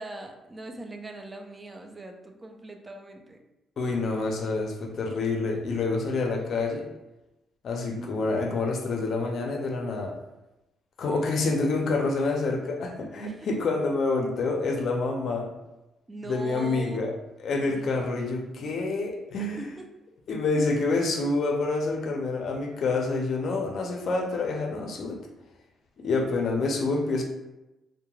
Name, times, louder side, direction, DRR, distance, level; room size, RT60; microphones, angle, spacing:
voice 1, 0.0-3.4 3.8-4.2 8.0-8.2 13.3-13.5 16.1-17.1 17.7-18.4 19.4-19.9, right 2 dB, 25° right, 4 dB, 0.4 m, -41 dB
voice 2, 3.8-6.9 7.6-10.2 11.0-15.5 16.3-17.1 17.4-19.7 20.3-25.2 26.0-27.2, left 3 dB, 60° left, 2 dB, 0.5 m, -27 dB
2.9 x 2.1 x 2.3 m, 0.96 s
cardioid pair, 90°, 0 cm